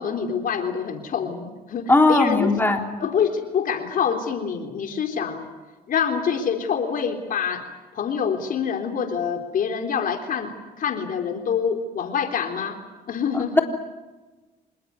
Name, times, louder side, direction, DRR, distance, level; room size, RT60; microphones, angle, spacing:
voice 1, 0.0-2.5 3.0-5.5 5.9-7.6 7.9-10.5 10.8-12.8 13.1-13.6, left 7 dB, 60° left, 6 dB, 3.7 m, -26 dB
voice 2, 1.9-2.8 13.3-13.6, left 2 dB, 15° left, 3 dB, 3.7 m, -18 dB
26.5 x 20.0 x 9.6 m, 1.2 s
cardioid pair, 80°, 16 cm